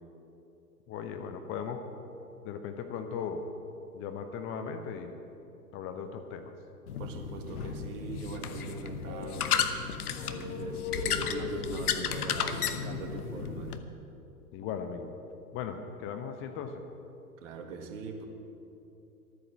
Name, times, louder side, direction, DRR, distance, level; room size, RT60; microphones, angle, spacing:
voice 1, 0.9-1.8 2.4-3.4 3.9-5.2 5.7-6.5 14.5-15.1 15.5-16.8, left 7 dB, 25° left, 6 dB, 0.8 m, -37 dB
sound 1, 6.9-13.8, left 7 dB, 65° left, 1.0 m, -33 dB
voice 2, 7.0-9.5 10.2-13.8 17.4-18.3, right 5 dB, 50° right, 4 dB, 1.8 m, -41 dB
12.5 x 9.6 x 7.1 m, 2.9 s
figure-of-eight pair, 100°, 48 cm